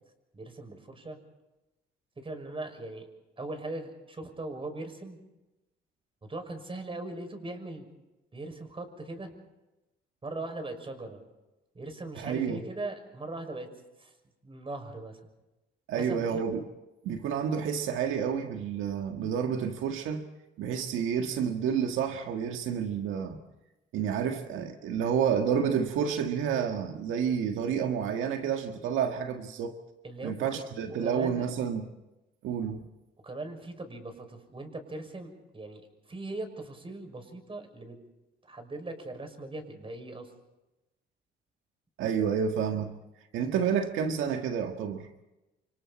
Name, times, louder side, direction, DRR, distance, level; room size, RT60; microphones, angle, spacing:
voice 1, 0.3-1.2 2.2-3.1 3.4-5.2 6.2-7.9 8.3-9.3 10.2-11.2 11.7-13.7 14.0-14.1 14.4-15.2 15.9-16.4 30.0-30.6 31.0-31.5 33.2-38.0 38.4-40.3, right 2 dB, 25° right, 6 dB, 6.2 m, -40 dB
voice 2, 12.2-12.6 15.9-16.7 17.0-20.3 20.6-23.4 23.9-29.8 30.2-31.9 32.4-32.8 42.0-42.9 43.3-45.1, right 7 dB, 90° right, 5 dB, 1.7 m, -29 dB
29.5 x 26.0 x 4.3 m, 1.0 s
cardioid pair, 90°, 20 cm